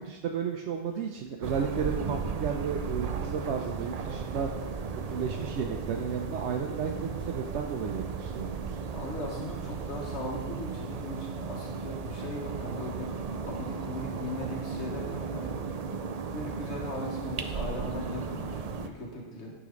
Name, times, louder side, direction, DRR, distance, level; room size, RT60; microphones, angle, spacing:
voice 1, 0.0-4.5 4.9-8.6, right 6 dB, 90° right, 2 dB, 1.0 m, -33 dB
sound 1, 1.4-18.9, right 5 dB, 50° right, 0.5 m, -35 dB
voice 2, 8.9-13.1 13.4-15.6 16.3-19.5, left 1 dB, 80° left, -2 dB, 1.8 m, -38 dB
11.5 x 4.0 x 5.2 m, 1.1 s
omnidirectional pair, 1.1 m